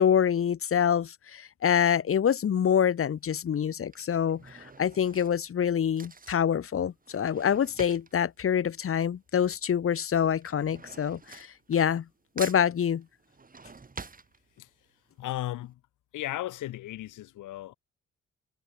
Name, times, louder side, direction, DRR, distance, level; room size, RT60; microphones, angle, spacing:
voice 1, 0.0-12.0 12.3-13.0, left 8 dB, 45° left, 1.4 m, -26 dB
Drawer open or close / Cutlery silverware, 2.4-2.8 3.6-9.5 9.7-12.1 12.4-14.9 15.3-15.4 15.6-15.7, right 4 dB, 30° right, 5.6 m, -47 dB
voice 2, 15.2-15.8 16.1-17.7, left 14 dB, 85° left, 6.1 m, -35 dB
cardioid pair, 90°, 30 cm